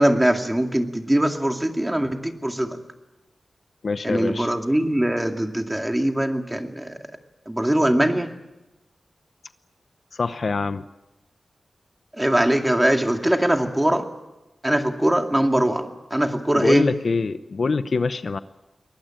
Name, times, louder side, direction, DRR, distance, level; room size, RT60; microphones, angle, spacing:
voice 1, 0.0-2.8 4.0-7.0 7.5-8.3 12.2-14.1 14.6-16.9, right 1 dB, 10° right, 4 dB, 2.3 m, -21 dB
voice 2, 3.8-4.5 10.1-10.8 16.5-18.4, left 4 dB, 60° left, 12 dB, 0.8 m, -24 dB
22.5 x 20.5 x 9.0 m, 1.0 s
wide cardioid pair, 90°, 0 cm